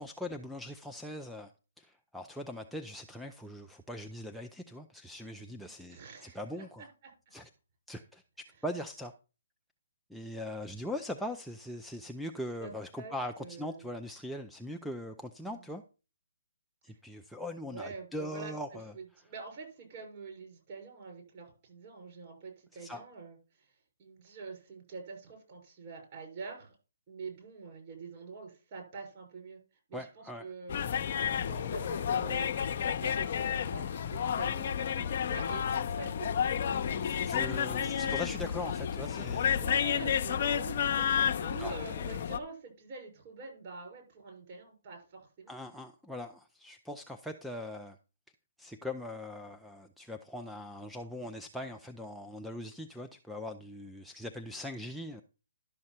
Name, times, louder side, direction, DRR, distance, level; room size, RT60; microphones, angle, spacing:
voice 1, 0.0-1.5 1.8-6.9 7.3-7.5 7.9-8.2 8.6-9.1 10.1-15.8 16.8-18.9 22.7-23.0 29.9-30.5 36.9-39.8 41.6-41.7 45.5-48.0 48.6-55.2, left 1 dB, ahead, 2 dB, 0.5 m, -41 dB
voice 2, 5.5-7.1 12.6-13.9 15.4-15.6 16.9-17.0 17.7-18.5 18.9-23.7 24.0-26.7 27.1-29.6 29.9-30.8 31.5-32.6 33.0-36.9 37.8-37.9 39.5-41.1 41.4-45.5, right 4 dB, 40° right, 1 dB, 6.2 m, -46 dB
sound 1, 30.7-42.4, left 8 dB, 50° left, 0.7 m, -31 dB
12.0 x 6.4 x 4.4 m, 0.33 s
figure-of-eight pair, 140°, 0 cm